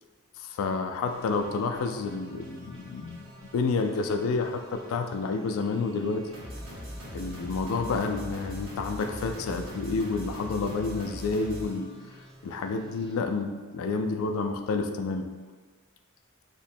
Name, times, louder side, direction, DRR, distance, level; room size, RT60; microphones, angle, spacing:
voice 1, 0.4-6.3 7.1-11.9 12.4-15.3, left 4 dB, 65° left, 6 dB, 0.3 m, -29 dB
sound 1, 1.0-13.1, equal, 60° right, 0.9 m, -43 dB
3.0 x 2.1 x 4.1 m, 1.4 s
head